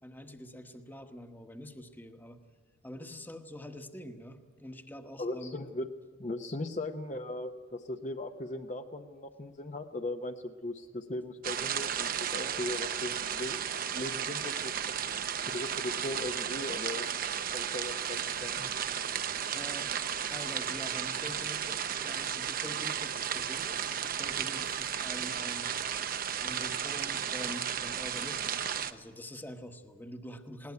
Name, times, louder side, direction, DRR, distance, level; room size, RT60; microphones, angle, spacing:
voice 1, 0.0-2.4 2.8-5.5 19.5-19.9 20.3-26.0 26.4-30.7, left 1 dB, 10° left, 7 dB, 1.1 m, -45 dB
voice 2, 5.2-5.9 6.2-14.7 15.5-17.1 17.5-18.7, left 1 dB, 35° left, 6 dB, 0.8 m, -38 dB
sound 1, 11.4-28.9, right 8 dB, 45° right, 0.8 m, -34 dB
20.0 x 18.5 x 9.6 m, 1.5 s
head